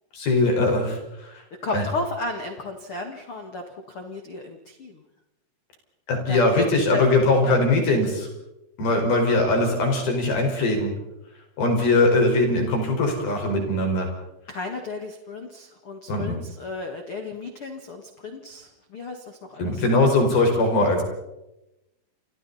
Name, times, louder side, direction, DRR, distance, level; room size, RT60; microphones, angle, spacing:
voice 1, 0.1-1.4 1.7-1.8 6.1-8.3 8.8-10.9 11.6-14.1 16.1-16.4 19.6-21.0, left 2 dB, 50° left, 2 dB, 6.9 m, -21 dB
voice 2, 1.6-4.9 6.3-6.6 6.9-7.0 7.4-7.6 14.5-20.1, left 3 dB, 80° left, 4 dB, 1.2 m, -34 dB
29.5 x 27.5 x 4.3 m, 0.92 s
omnidirectional pair, 5.8 m